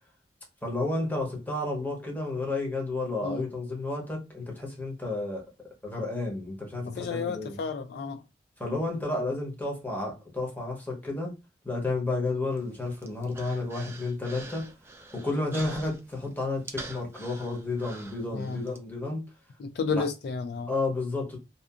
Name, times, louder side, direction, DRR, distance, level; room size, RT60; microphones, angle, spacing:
voice 1, 0.6-5.4 5.8-7.6 8.6-11.3 11.6-14.7 15.1-19.2 19.9-20.0 20.7-21.4, left 2 dB, 10° left, 0.8 m, -31 dB
voice 2, 6.8-8.2 18.3-18.6 19.6-20.7, left 4 dB, 65° left, 0.3 m, -32 dB
Human voice, 12.5-18.8, right 2 dB, 15° right, 0.3 m, -45 dB
2.6 x 2.4 x 2.4 m
head